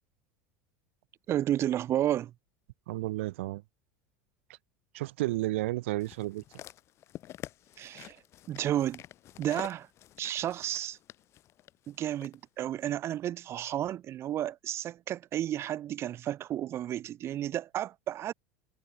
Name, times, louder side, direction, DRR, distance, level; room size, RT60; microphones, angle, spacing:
voice 1, 1.3-2.3 7.8-8.2 8.5-9.0 9.4-9.9 10.2-11.0 11.9-18.3, right 12 dB, 40° right, 3.0 m, -32 dB
voice 2, 2.9-3.6 4.9-6.4, right 18 dB, 85° right, 0.8 m, -32 dB
sound 1, 6.0-12.4 13.1-13.2, left 13 dB, 45° left, 2.8 m, -48 dB
supercardioid pair, 120°, 7 cm